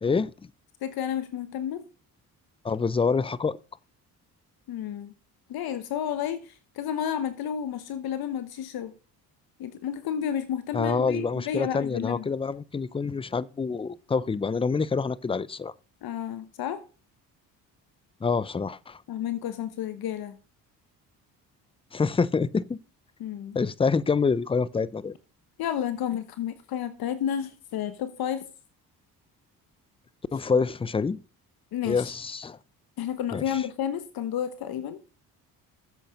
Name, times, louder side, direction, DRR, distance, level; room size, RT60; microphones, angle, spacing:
voice 1, 0.0-0.3 2.6-3.6 10.7-15.7 18.2-19.0 21.9-22.8 23.5-25.1 30.3-31.2 31.8-32.6 33.3-33.4, left 5 dB, 15° left, 0.5 m, -26 dB
voice 2, 0.8-1.8 4.7-5.1 5.5-8.9 9.6-12.3 16.0-16.8 19.1-20.4 23.2-23.6 25.6-28.4 31.7-32.1 33.0-35.0, left 9 dB, 70° left, 1.1 m, -31 dB
10.5 x 7.8 x 5.2 m
cardioid pair, 85°, 38 cm